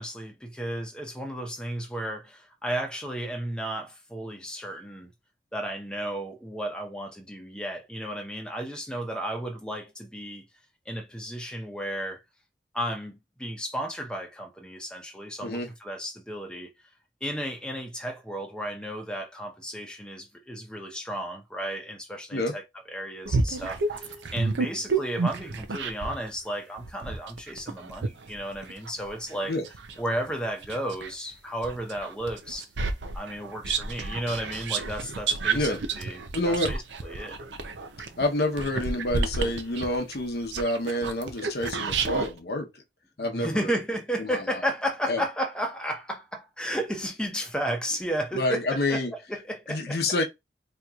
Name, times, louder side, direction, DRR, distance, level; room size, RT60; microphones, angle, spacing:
voice 1, 0.0-5.1 5.5-10.4 10.9-12.2 12.7-16.7 17.2-22.6 22.9-29.5 30.0-32.7 33.1-37.4 43.2-50.0, right 1 dB, 5° left, 0.8 m, -33 dB
sound 1, 23.3-26.2 26.8-31.1 31.6-42.3, right 4 dB, 90° right, 0.6 m, -30 dB
voice 2, 36.3-36.7 38.2-42.8 43.2-43.8 44.2-44.4 45.1-45.2 48.3-49.1 49.7-50.2, left 1 dB, 65° left, 0.9 m, -28 dB
4.3 x 3.0 x 2.4 m
head